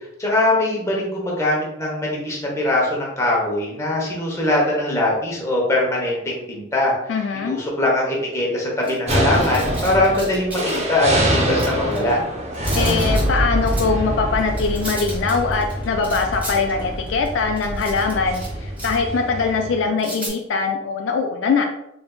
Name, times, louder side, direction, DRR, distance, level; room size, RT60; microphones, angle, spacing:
voice 1, 0.2-6.9 7.5-12.2, left 1 dB, 15° left, -3 dB, 1.0 m, -21 dB
voice 2, 7.1-7.6 12.8-21.7, left 4 dB, 70° left, 4 dB, 0.4 m, -22 dB
sound 1, 8.8-10.9 11.4-12.2 12.5-13.4 13.7-13.9 14.4-18.5 18.8-19.1 20.0-20.3, right 1 dB, 10° right, 1.2 m, -34 dB
sound 2, 9.1-19.8, equal, 35° right, 0.6 m, -26 dB
sound 3, 13.0-19.0, equal, 50° left, 0.9 m, -27 dB
4.0 x 3.4 x 2.3 m, 0.83 s
head